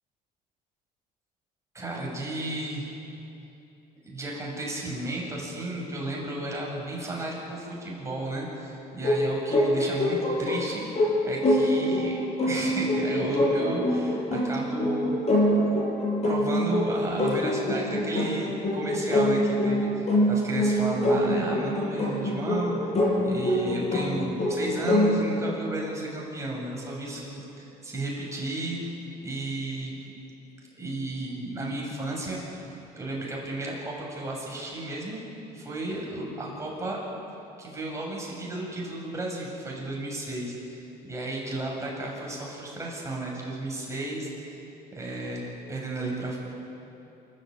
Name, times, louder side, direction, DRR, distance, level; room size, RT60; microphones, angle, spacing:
voice 1, 1.7-2.9 4.0-15.5 16.1-22.9 23.2-29.9 30.7-32.7 32.9-35.2 35.5-37.0 37.6-44.5 44.9-46.4, right 2 dB, 15° right, -3 dB, 7.4 m, -33 dB
sound 1, 9.0-25.1, left 1 dB, 40° left, 7.0 m, -25 dB
27.5 x 14.0 x 8.8 m, 3.0 s
cardioid pair, 110°, 17 cm